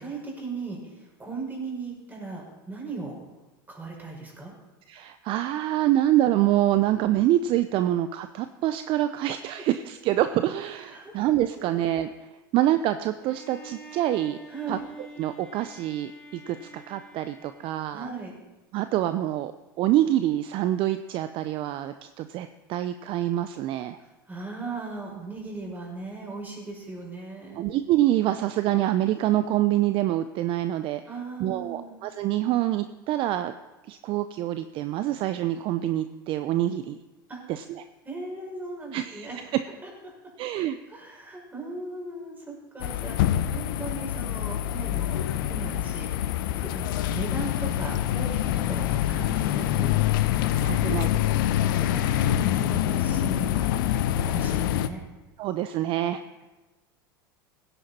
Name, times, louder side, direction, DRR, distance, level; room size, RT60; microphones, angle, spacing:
voice 1, 0.0-3.2 3.7-4.5 9.0-9.1 10.9-11.1 14.5-14.8 17.9-18.3 24.0-27.7 31.1-32.0 37.3-37.4 38.0-39.5 39.8-40.1 40.9-49.9 50.4-51.1 51.6-53.7 54.3-55.0, right 3 dB, 15° right, -2 dB, 5.6 m, -38 dB
voice 2, 4.9-12.1 12.5-14.4 14.7-14.8 15.2-18.1 18.7-19.5 19.8-24.0 27.6-31.0 31.4-33.5 33.9-37.0 37.5-37.8 38.9-39.3 40.4-40.8 50.6-51.1 55.4-56.2, right 13 dB, 50° right, 11 dB, 0.6 m, -26 dB
Bowed string instrument, 13.2-18.2, right 1 dB, 5° left, 2.9 m, -47 dB
sound 1, 42.8-54.9, left 12 dB, 70° left, 0.8 m, -25 dB
sound 2, 47.8-52.3 52.5-52.6, left 6 dB, 55° left, 3.5 m, -42 dB
17.0 x 10.0 x 4.3 m, 1.1 s
hypercardioid pair, 95°, 12 cm